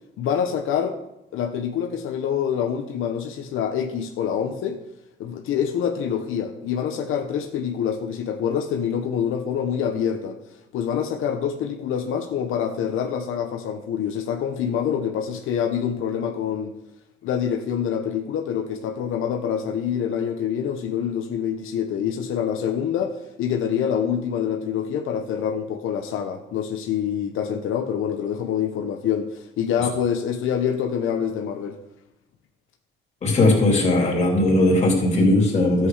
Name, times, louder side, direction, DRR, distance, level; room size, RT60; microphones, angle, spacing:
voice 1, 0.2-1.0 1.3-4.8 5.2-16.7 17.2-31.8, left 8 dB, 90° left, 4 dB, 1.1 m, -26 dB
voice 2, 33.2-35.9, left 2 dB, 35° left, -1 dB, 3.1 m, -18 dB
13.0 x 7.8 x 4.9 m, 0.89 s
cardioid pair, 165°, 20 cm